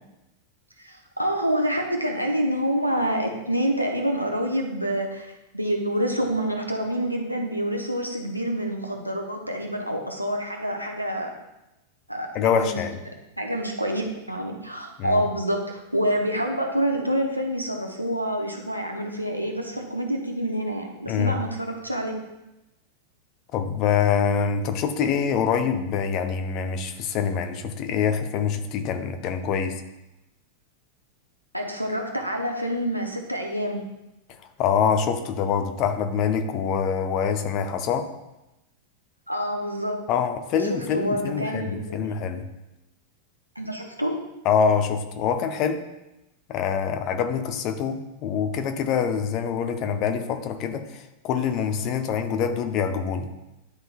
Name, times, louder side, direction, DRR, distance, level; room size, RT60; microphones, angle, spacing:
voice 1, 0.8-11.3 12.1-12.8 13.4-22.1 31.5-33.8 39.3-40.0 40.6-42.1 43.6-44.2, equal, 90° right, 2 dB, 0.8 m, -27 dB
voice 2, 12.3-13.0 15.0-15.2 21.1-21.4 23.5-29.8 34.6-38.1 40.1-42.5 44.4-45.9 46.5-53.3, left 7 dB, 40° left, 8 dB, 0.6 m, -25 dB
10.5 x 3.8 x 2.4 m, 0.95 s
figure-of-eight pair, 90°, 0 cm